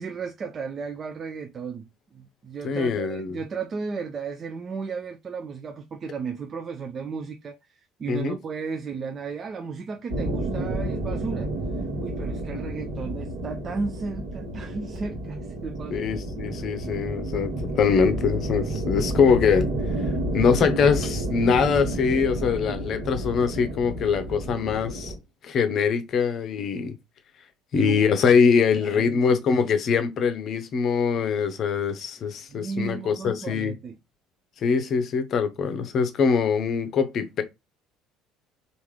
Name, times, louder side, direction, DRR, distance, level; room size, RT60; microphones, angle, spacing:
voice 1, 0.0-11.5 11.8-16.2 27.7-28.2 28.8-29.4 32.5-34.0, right 5 dB, 35° right, 0.4 m, -34 dB
voice 2, 2.6-3.4 8.1-8.4 15.9-19.7 20.3-25.1 25.4-26.9 27.7-33.7 34.6-37.4, left 6 dB, 45° left, 0.6 m, -23 dB
sound 1, 10.1-25.2, right 1 dB, 65° right, 1.1 m, -30 dB
3.4 x 2.5 x 3.2 m
figure-of-eight pair, 60°, 0 cm